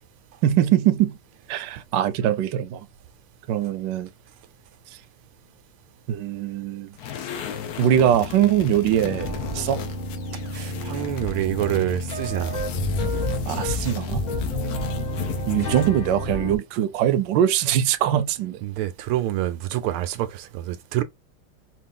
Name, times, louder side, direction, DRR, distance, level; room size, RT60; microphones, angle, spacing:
voice 1, 0.4-1.2 1.5-2.8 3.5-4.1 6.1-6.9 7.8-9.8 13.5-14.3 15.5-18.6, right 11 dB, 70° right, 1.1 m, -22 dB
sound 1, 7.0-16.0, left 9 dB, 70° left, 1.0 m, -36 dB
sound 2, 9.0-16.6, left 1 dB, 25° left, 1.1 m, -29 dB
voice 2, 10.5-12.6 18.6-21.0, right 13 dB, 90° right, 1.5 m, -27 dB
4.3 x 2.4 x 3.7 m
omnidirectional pair, 2.3 m